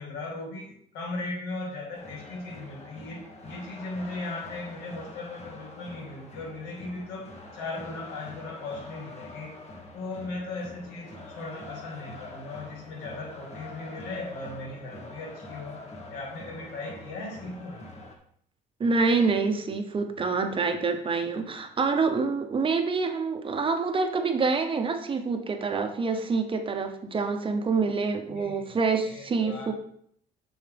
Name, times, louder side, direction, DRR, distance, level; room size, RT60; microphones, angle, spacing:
voice 1, 0.0-9.6 9.9-15.8 16.1-17.8 28.3-28.6 29.1-29.7, left 2 dB, 90° left, 1 dB, 1.9 m, -38 dB
sound 1, 1.9-18.1, left 2 dB, 40° left, 1.4 m, -45 dB
voice 2, 18.8-29.7, right 4 dB, 30° right, 5 dB, 0.8 m, -26 dB
6.7 x 6.3 x 3.4 m, 0.66 s
cardioid pair, 110°, 17 cm